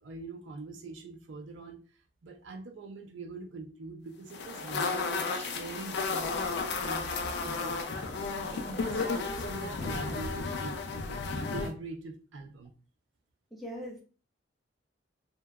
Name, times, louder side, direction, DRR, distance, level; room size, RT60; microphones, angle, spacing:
voice 1, 0.0-1.8 2.2-8.1 8.5-12.7, right 3 dB, 70° right, 4 dB, 0.4 m, -43 dB
sound 1, 4.3-11.7, left 4 dB, 60° left, 0.3 m, -33 dB
voice 2, 13.5-14.0, equal, ahead, -4 dB, 0.6 m, -41 dB
2.8 x 2.2 x 2.3 m, 0.38 s
head